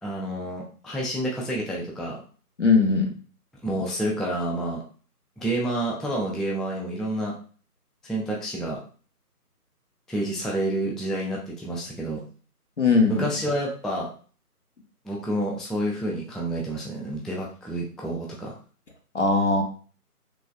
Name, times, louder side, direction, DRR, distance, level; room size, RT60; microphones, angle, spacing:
voice 1, 0.0-2.2 3.6-4.8 5.4-7.4 8.0-8.8 10.1-12.2 13.1-14.1 15.0-18.6, right 1 dB, ahead, -3 dB, 0.3 m, -29 dB
voice 2, 2.6-3.1 12.8-13.3 19.1-19.6, left 4 dB, 50° left, 3 dB, 0.5 m, -19 dB
3.1 x 2.3 x 2.2 m, 0.40 s
figure-of-eight pair, 170°, 47 cm